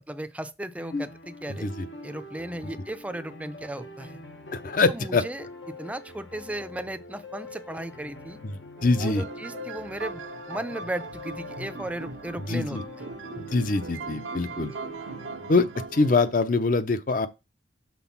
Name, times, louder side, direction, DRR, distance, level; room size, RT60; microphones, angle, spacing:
voice 1, 0.1-1.7 2.0-4.2 4.9-8.4 8.9-13.0, right 1 dB, 10° right, 0.5 m, -36 dB
sound 1, 0.8-15.5, left 2 dB, 80° left, 1.1 m, -44 dB
voice 2, 4.5-5.2 8.4-9.2 12.5-12.8 13.4-14.7 15.5-15.7 15.9-17.3, left 3 dB, 45° left, 0.6 m, -24 dB
sound 2, 8.8-16.3, right 3 dB, 85° right, 0.7 m, -39 dB
6.1 x 3.8 x 5.8 m
head